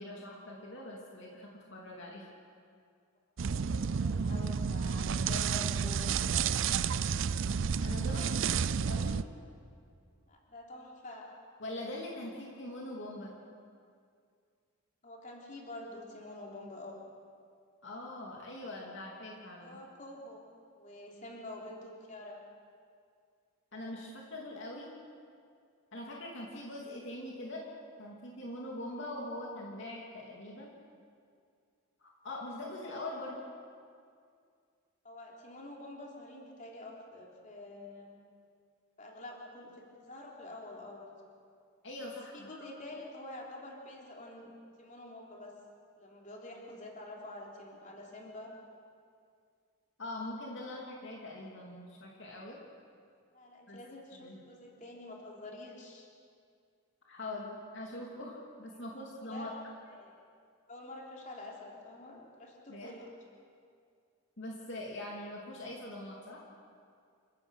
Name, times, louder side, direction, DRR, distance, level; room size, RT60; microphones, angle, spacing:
voice 1, 0.0-2.3 7.8-9.2 11.6-13.3 17.8-19.8 23.7-24.9 25.9-27.7 28.0-30.7 32.0-33.4 41.8-42.5 50.0-52.6 53.7-53.8 54.1-54.4 57.0-59.5 62.7-62.9 64.4-66.5, left 1 dB, 55° left, -2 dB, 2.8 m, -42 dB
voice 2, 3.4-6.2 10.3-11.3 15.0-17.0 19.6-20.4 20.8-22.4 35.0-38.1 39.0-41.1 42.3-44.5 44.8-45.5 46.0-48.5 53.3-56.1 58.7-59.6 59.9-60.2 60.7-63.1, left 1 dB, 35° left, -2 dB, 3.5 m, -47 dB
sound 1, 3.4-9.2, right 6 dB, 60° right, 0.5 m, -31 dB
28.0 x 15.5 x 6.6 m, 2.3 s
head